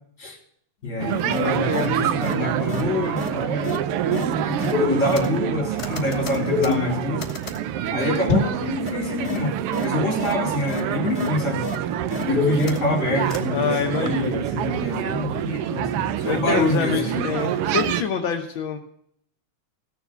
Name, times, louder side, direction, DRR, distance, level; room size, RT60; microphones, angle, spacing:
voice 1, 0.8-7.3 7.9-11.7 12.2-17.3, left 2 dB, 25° left, 1 dB, 3.7 m, -26 dB
sound 1, 1.0-18.0, right 10 dB, 90° right, 1.3 m, -26 dB
sound 2, 1.3-1.4 1.7-1.9 2.2-2.3 2.7-2.8 3.2-3.3 3.6-3.8 4.1-4.2 4.6-5.5 5.8-7.6 8.3-8.6 8.9-9.0 9.2-9.4 9.7-9.8 10.2-10.3 10.7-10.8 11.1-11.3 11.6-11.8 12.1-13.0 13.3-13.4, left 4 dB, 45° left, 1.4 m, -26 dB
voice 2, 1.4-1.8 13.5-14.4 16.2-18.8, left 7 dB, 65° left, 3 dB, 1.3 m, -26 dB
17.0 x 7.0 x 7.0 m, 0.66 s
omnidirectional pair, 3.4 m